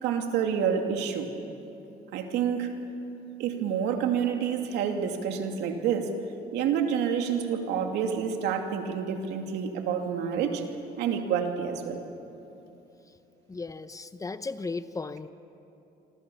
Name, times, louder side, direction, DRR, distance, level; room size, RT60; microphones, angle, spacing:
voice 1, 0.0-1.3 2.1-2.7 3.4-6.1 6.5-10.6 11.0-12.0, right 7 dB, 85° right, 4 dB, 2.6 m, -28 dB
voice 2, 13.5-15.3, left 3 dB, 20° left, 12 dB, 0.8 m, -35 dB
26.5 x 26.5 x 7.1 m, 2.9 s
cardioid pair, 110°, 17 cm